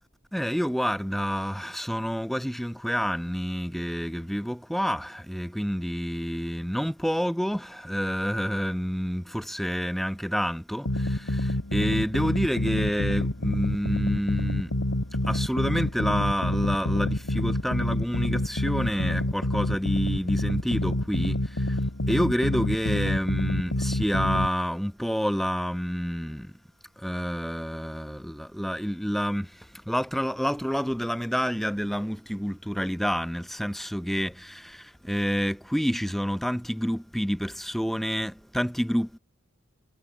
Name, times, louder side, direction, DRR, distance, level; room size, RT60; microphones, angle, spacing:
voice 1, 0.3-14.8 15.2-21.8 22.1-26.6 27.0-39.2, equal, ahead, 2.5 m, -28 dB
sound 1, 10.8-24.5, left 1 dB, 85° left, 2.3 m, -27 dB
head